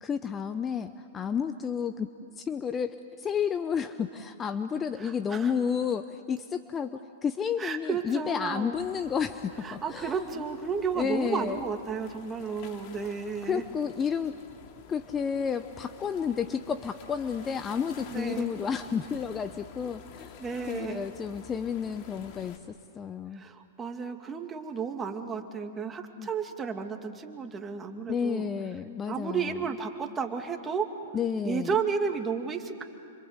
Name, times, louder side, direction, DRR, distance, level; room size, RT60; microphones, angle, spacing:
voice 1, 0.0-10.3 11.0-11.6 13.5-14.3 14.9-20.4 20.7-23.5 26.2-26.3 28.1-29.6 31.1-31.7, left 7 dB, 20° left, 11 dB, 0.8 m, -31 dB
voice 2, 5.0-5.5 7.6-8.8 9.6-13.6 18.1-18.5 20.4-21.1 23.3-28.5 29.1-30.9 31.4-32.8, right 6 dB, 20° right, 4 dB, 2.5 m, -32 dB
sound 1, 8.7-22.6, left 6 dB, 45° left, 2.4 m, -49 dB
27.5 x 25.5 x 8.2 m, 2.4 s
hypercardioid pair, 115°, 0 cm